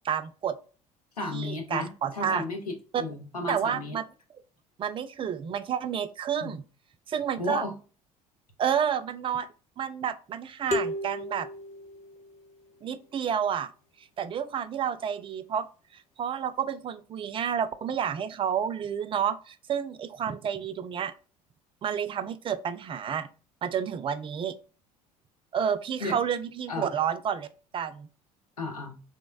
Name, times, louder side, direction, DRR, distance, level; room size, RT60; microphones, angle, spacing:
voice 1, 0.0-0.6 1.3-2.4 2.9-3.0 3.5-4.0 4.8-6.6 7.1-7.6 8.6-9.5 9.8-11.5 12.8-13.7 14.2-15.7 15.9-21.1 21.8-23.3 23.6-24.6 25.5-27.5 27.7-28.1, right 8 dB, 30° right, 0.3 m, -30 dB
voice 2, 1.2-4.0 6.4-6.5 7.4-7.7 26.0-26.2 26.7-26.9 28.6-29.0, left 2 dB, 90° left, 0.7 m, -34 dB
sound 1, 10.7-12.6, left 1 dB, 40° left, 0.8 m, -33 dB
3.4 x 2.0 x 2.2 m
figure-of-eight pair, 60°, 19 cm